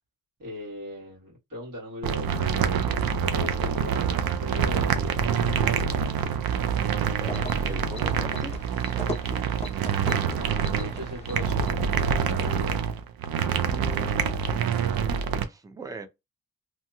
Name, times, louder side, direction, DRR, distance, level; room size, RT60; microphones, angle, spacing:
voice 1, 0.4-5.4 10.4-12.8, left 1 dB, 65° right, 1.6 m, -39 dB
sound 1, 2.0-15.4, right 7 dB, 85° right, 0.5 m, -26 dB
sound 2, 7.1-12.0, left 1 dB, 20° left, 0.8 m, -39 dB
voice 2, 7.2-8.6 14.4-16.1, right 3 dB, 10° right, 0.3 m, -41 dB
2.9 x 2.8 x 2.2 m
wide cardioid pair, 160°, 35 cm